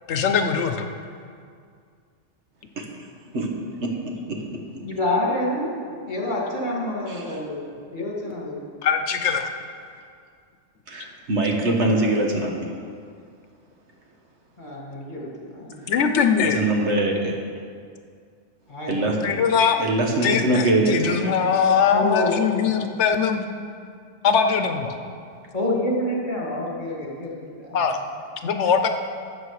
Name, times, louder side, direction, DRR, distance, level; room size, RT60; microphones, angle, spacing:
voice 1, 0.1-0.9 8.8-9.5 15.9-16.7 19.2-19.8 20.2-23.4 24.2-24.9 27.7-28.0 28.4-28.9, left 6 dB, 80° left, 7 dB, 1.0 m, -21 dB
voice 2, 3.8-4.4 7.1-7.2 10.9-12.7 16.5-17.3 18.9-19.2 19.8-21.3, right 2 dB, 80° right, 1 dB, 1.6 m, -23 dB
voice 3, 4.8-5.8 6.1-7.6 7.9-8.6 14.6-15.9 18.7-19.3 21.9-22.8 25.5-27.8, left 1 dB, 45° left, -3 dB, 2.0 m, -27 dB
12.5 x 7.5 x 4.8 m, 2.2 s
omnidirectional pair, 1.2 m